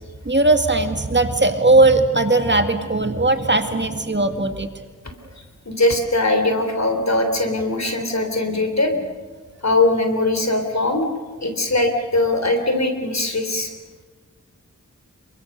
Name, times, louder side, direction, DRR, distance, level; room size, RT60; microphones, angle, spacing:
voice 1, 0.3-4.7, right 2 dB, 35° right, 6 dB, 2.0 m, -18 dB
voice 2, 5.7-9.1 9.6-11.1 11.4-13.7, left 2 dB, 60° left, 6 dB, 3.6 m, -20 dB
28.0 x 23.5 x 6.7 m, 1.4 s
wide cardioid pair, 55°, 31 cm